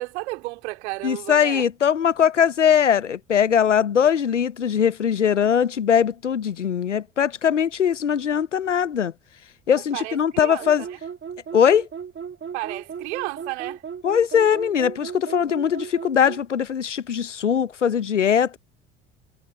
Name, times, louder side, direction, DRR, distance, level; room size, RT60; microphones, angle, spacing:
voice 1, 0.0-1.7 9.9-11.0 12.5-13.8, right 22 dB, 70° right, 3.3 m, -32 dB
voice 2, 1.0-9.1 9.7-10.8 11.5-11.9 14.0-18.6, left 8 dB, 90° left, 0.8 m, -21 dB
sound 1, 10.6-16.5, right 7 dB, 30° right, 1.5 m, -36 dB
figure-of-eight pair, 60°, 35 cm